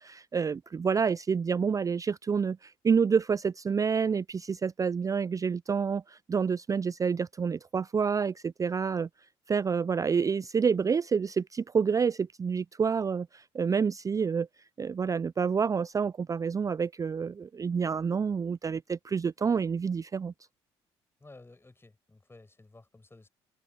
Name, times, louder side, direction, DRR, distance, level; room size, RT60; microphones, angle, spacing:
voice 1, 0.0-9.1 9.5-14.5 14.8-20.3, right 6 dB, 30° right, 0.4 m, -28 dB
voice 2, 21.2-23.3, left 2 dB, 20° left, 6.5 m, -54 dB
hypercardioid pair, 55°, 12 cm